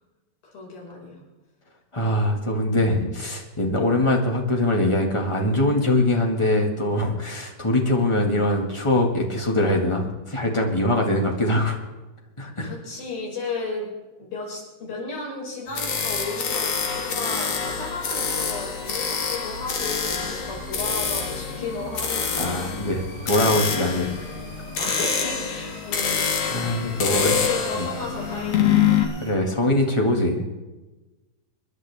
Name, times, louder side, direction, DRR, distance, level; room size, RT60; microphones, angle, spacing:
voice 1, 0.4-1.2 12.6-13.9 14.2-22.6 24.8-26.2 27.0-29.1, left 3 dB, 85° left, -3 dB, 7.5 m, -33 dB
voice 2, 1.9-11.8 12.4-12.7 22.4-24.1 24.8-24.9 26.5-27.3 27.7-27.9 29.2-30.4, left 1 dB, 15° left, 1 dB, 0.9 m, -22 dB
sound 1, 15.7-29.0, left 7 dB, 55° left, 2.2 m, -26 dB
sound 2, 15.7-29.3, equal, 10° right, 4.6 m, -41 dB
26.0 x 11.0 x 3.6 m, 1.1 s
omnidirectional pair, 4.1 m